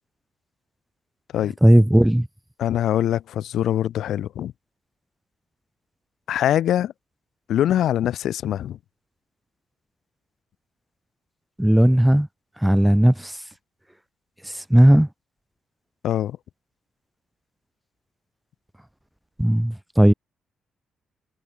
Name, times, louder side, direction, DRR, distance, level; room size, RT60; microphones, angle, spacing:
voice 1, 1.6-2.3 11.6-12.3 12.6-13.4 14.5-15.1 19.4-20.1, right 1 dB, 5° right, 0.7 m, -16 dB
voice 2, 2.6-4.5 6.3-6.9 7.5-8.8 16.0-16.4, left 11 dB, 75° left, 0.5 m, -23 dB
cardioid pair, 120°, 0 cm